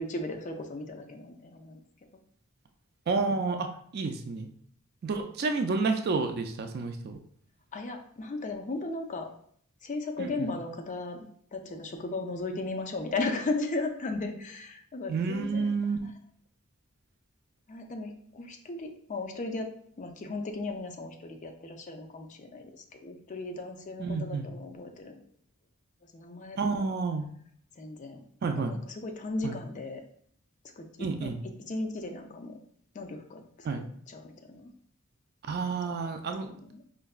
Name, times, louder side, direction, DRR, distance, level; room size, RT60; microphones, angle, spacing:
voice 1, 0.0-1.8 5.1-5.3 7.7-9.3 9.8-11.2 11.5-16.1 17.7-19.7 20.0-25.2 26.1-26.9 27.8-30.0 30.8-32.6 32.9-33.7 34.1-34.7 35.8-35.9 36.3-36.8, left 2 dB, 40° left, 4 dB, 0.4 m, -36 dB
voice 2, 3.1-4.5 5.0-7.2 10.2-10.5 15.1-16.0 24.0-24.5 26.6-27.3 28.4-28.7 29.4-29.6 31.0-31.4 33.6-33.8 35.5-36.6, right 4 dB, 50° right, 6 dB, 0.4 m, -30 dB
4.5 x 2.2 x 2.3 m, 0.62 s
head